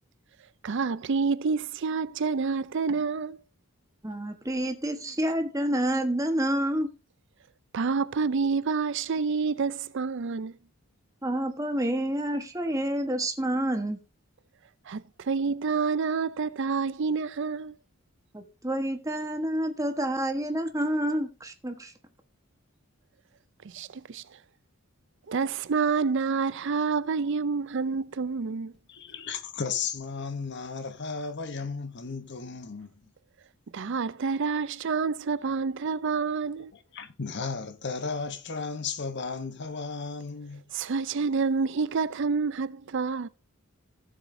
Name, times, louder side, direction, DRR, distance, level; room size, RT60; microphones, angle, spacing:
voice 1, 0.6-3.4 7.7-10.5 14.9-17.7 23.6-24.2 25.3-28.7 33.7-36.7 40.7-43.3, right 5 dB, 55° right, 0.5 m, -28 dB
voice 2, 4.0-6.9 11.2-14.0 18.3-21.9, right 1 dB, 15° right, 1.2 m, -28 dB
voice 3, 28.9-33.1 35.4-35.5 36.7-40.6, left 5 dB, 50° left, 0.9 m, -35 dB
16.0 x 7.3 x 2.7 m
head